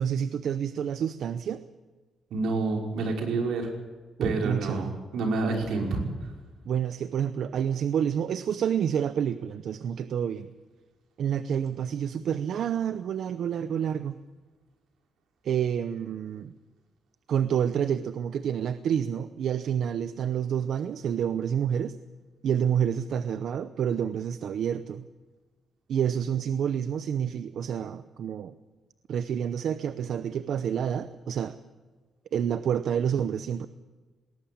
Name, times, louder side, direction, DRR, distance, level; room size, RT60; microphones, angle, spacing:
voice 1, 0.0-1.6 4.2-4.9 6.7-10.5 11.2-14.2 15.4-16.5 17.3-22.0 22.4-25.1 25.9-28.6 29.1-31.6 32.3-33.7, right 8 dB, 60° right, 12 dB, 0.7 m, -28 dB
voice 2, 2.3-3.7 4.2-6.0, right 3 dB, 80° right, 2 dB, 5.5 m, -28 dB
20.0 x 19.0 x 8.7 m, 1.3 s
cardioid pair, 160°, 0 cm